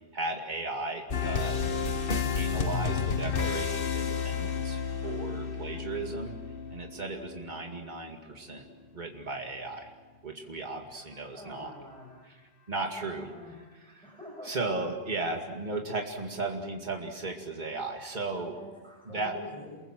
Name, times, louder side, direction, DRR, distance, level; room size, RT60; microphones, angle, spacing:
voice 1, 0.1-1.6 2.3-6.4 6.7-8.6 8.9-9.9 10.2-11.7 12.3-12.4 12.7-13.3 13.8-14.1 14.4-18.5 19.1-19.4, right 3 dB, 45° right, 2 dB, 2.5 m, -35 dB
sound 1, 1.1-7.8, left 6 dB, 60° left, 1.4 m, -31 dB
voice 2, 11.3-12.2 12.9-13.6 13.8-14.5 18.3-19.8, left 1 dB, 5° left, -3 dB, 7.2 m, -46 dB
28.0 x 22.5 x 7.6 m, 1.3 s
omnidirectional pair, 1.0 m